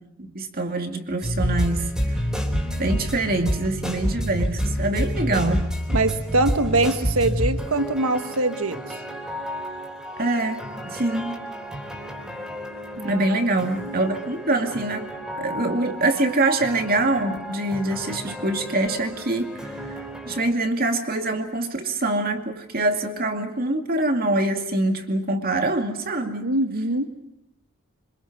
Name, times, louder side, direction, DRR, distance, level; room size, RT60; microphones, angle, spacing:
voice 1, 0.3-2.2 2.8-5.7 10.2-11.4 13.0-15.1 15.4-26.5, right 2 dB, 40° right, 5 dB, 2.4 m, -25 dB
sound 1, 1.2-20.5, equal, 5° right, 4.0 m, -30 dB
voice 2, 5.9-9.0 13.0-13.5 26.4-27.1, right 2 dB, 75° right, 8 dB, 1.5 m, -23 dB
27.0 x 25.5 x 6.1 m, 0.86 s
head